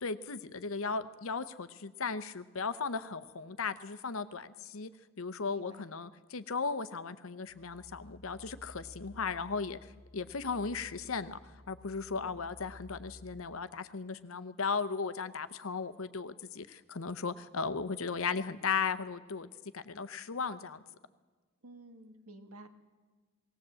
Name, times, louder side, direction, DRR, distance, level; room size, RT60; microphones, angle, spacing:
voice 1, 0.0-4.9 5.2-9.8 10.1-11.4 11.7-19.5 19.7-20.8, left 5 dB, 65° left, 13 dB, 0.8 m, -36 dB
voice 2, 5.5-5.9 12.1-12.4 21.6-22.7, right 2 dB, 85° right, 7 dB, 1.7 m, -52 dB
sound 1, 7.5-13.4, left 1 dB, 5° left, 2.5 m, -54 dB
19.0 x 18.0 x 7.7 m, 1.4 s
head